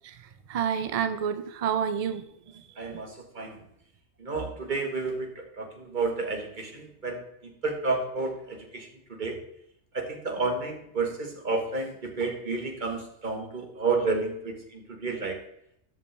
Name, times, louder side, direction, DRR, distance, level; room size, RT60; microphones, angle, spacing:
voice 1, 0.0-3.1, right 8 dB, 60° right, 11 dB, 0.4 m, -30 dB
voice 2, 2.8-3.6 4.2-9.4 9.9-15.4, right 3 dB, 40° right, 3 dB, 1.5 m, -31 dB
12.5 x 5.2 x 3.3 m, 0.74 s
omnidirectional pair, 1.3 m